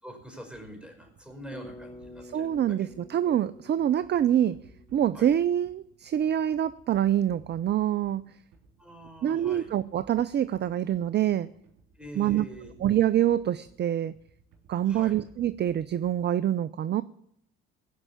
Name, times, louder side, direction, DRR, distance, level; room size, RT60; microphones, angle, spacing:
voice 1, 0.0-2.8 5.1-5.3 8.8-9.7 12.0-12.7 14.8-15.2, right 1 dB, 5° right, 3 dB, 4.9 m, -45 dB
sound 1, 0.5-16.4, right 4 dB, 65° right, 4.1 m, -59 dB
Bass guitar, 1.5-5.6, left 2 dB, 15° left, 1.0 m, -49 dB
voice 2, 2.2-4.6 4.9-8.3 9.2-11.5 12.2-12.5 12.8-14.1 14.7-17.0, right 11 dB, 35° right, 17 dB, 0.4 m, -25 dB
16.5 x 5.5 x 8.4 m, 0.73 s
hypercardioid pair, 55°, 30 cm